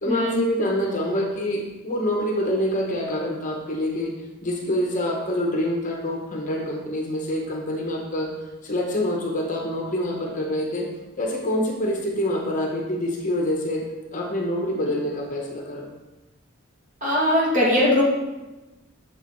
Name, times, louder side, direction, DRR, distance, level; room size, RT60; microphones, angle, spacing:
voice 1, 0.0-4.1 4.4-8.3 8.6-10.9 11.2-13.8 14.1-15.9, left 1 dB, 40° left, 0 dB, 1.0 m, -26 dB
voice 2, 17.0-18.0, left 1 dB, 35° right, -6 dB, 2.2 m, -20 dB
7.5 x 6.4 x 3.1 m, 1.1 s
head